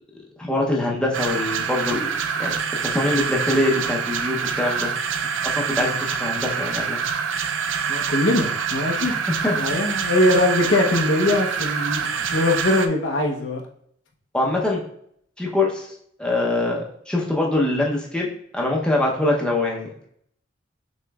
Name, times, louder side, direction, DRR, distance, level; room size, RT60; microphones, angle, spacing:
voice 1, 0.4-2.1 2.4-2.6 2.8-4.9 5.4-7.0 9.0-9.2 9.4-9.6 14.3-14.8 15.4-15.9 16.2-20.1, left 2 dB, 5° left, -3 dB, 0.7 m, -23 dB
sound 1, 1.1-12.9, right 6 dB, 85° right, 0.4 m, -26 dB
voice 2, 7.9-9.2 9.6-13.6, left 1 dB, 90° left, 1 dB, 0.8 m, -21 dB
6.3 x 3.1 x 2.3 m, 0.68 s
head